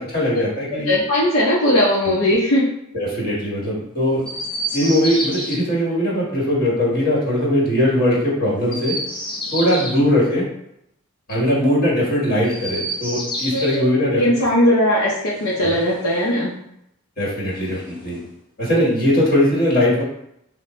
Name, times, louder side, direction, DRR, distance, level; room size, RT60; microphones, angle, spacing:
voice 1, 0.0-0.9 2.9-4.2 4.7-9.0 9.5-10.5 11.3-14.2 17.2-18.2 18.6-20.0, left 1 dB, 45° left, -5 dB, 1.5 m, -20 dB
voice 2, 0.7-2.7 13.5-13.9 14.1-16.5, left 1 dB, 80° left, -6 dB, 0.7 m, -18 dB
Chirp tweet, 4.2-5.6 8.6-10.0 12.4-13.8 15.2-16.3 17.4-18.3, equal, 25° left, 0.7 m, -30 dB
4.2 x 2.1 x 3.1 m, 0.79 s
head